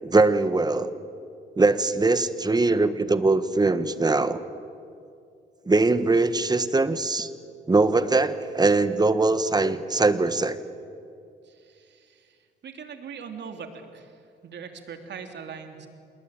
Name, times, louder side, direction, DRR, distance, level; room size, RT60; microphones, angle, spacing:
voice 1, 0.0-0.9 1.6-4.4 5.7-7.3 7.7-10.6, right 3 dB, 20° right, 12 dB, 1.4 m, -21 dB
voice 2, 11.4-12.4 12.6-15.9, right 6 dB, 60° right, 5 dB, 3.2 m, -41 dB
27.5 x 20.5 x 9.1 m, 2.4 s
cardioid pair, 90°, 20 cm